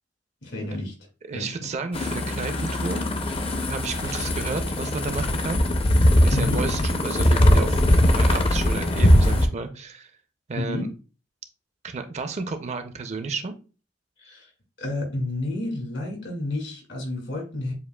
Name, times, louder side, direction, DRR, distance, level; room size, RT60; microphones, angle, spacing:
voice 1, 0.4-0.9 1.3-1.7 4.0-4.1 6.3-6.7 10.6-10.9 14.2-14.5 14.8-17.7, left 1 dB, 75° left, 1 dB, 1.9 m, -30 dB
voice 2, 1.3-3.1 3.7-5.6 6.2-7.8 8.1-10.1 10.5-10.9 11.8-13.5, right 4 dB, 40° right, 8 dB, 0.5 m, -32 dB
sound 1, 1.9-9.5, left 1 dB, 30° left, 0.5 m, -20 dB
7.0 x 2.4 x 2.2 m, 0.34 s
head